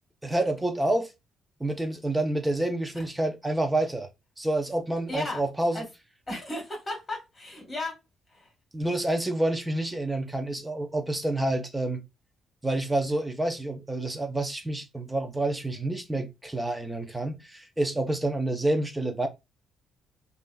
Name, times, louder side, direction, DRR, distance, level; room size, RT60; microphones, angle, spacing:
voice 1, 0.2-1.1 1.6-4.1 4.4-5.8 8.7-12.0 12.6-19.3, right 1 dB, 10° right, 0.5 m, -28 dB
voice 2, 5.1-5.4 5.7-5.9 6.3-7.9 8.3-8.5, left 1 dB, 25° left, 1.7 m, -34 dB
3.4 x 2.5 x 2.2 m
cardioid pair, 90°, 0 cm